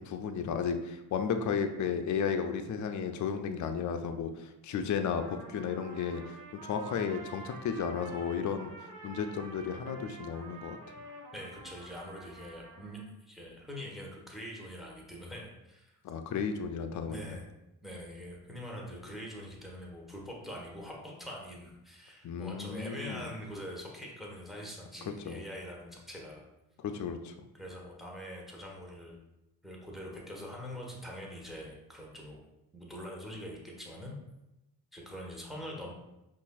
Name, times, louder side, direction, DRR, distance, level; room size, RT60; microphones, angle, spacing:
voice 1, 0.0-8.7 9.0-10.8 16.0-17.4 22.2-23.3 25.3-25.4 26.8-27.3, left 6 dB, 40° left, 7 dB, 0.5 m, -34 dB
Trumpet, 5.2-13.1, right 2 dB, 40° right, 1.1 m, -48 dB
voice 2, 11.3-16.0 17.0-17.4 17.8-26.4 27.5-29.2 29.6-32.4 32.7-34.2 34.9-35.9, equal, ahead, -2 dB, 1.3 m, -44 dB
5.3 x 2.6 x 2.3 m, 0.93 s
hypercardioid pair, 45°, 49 cm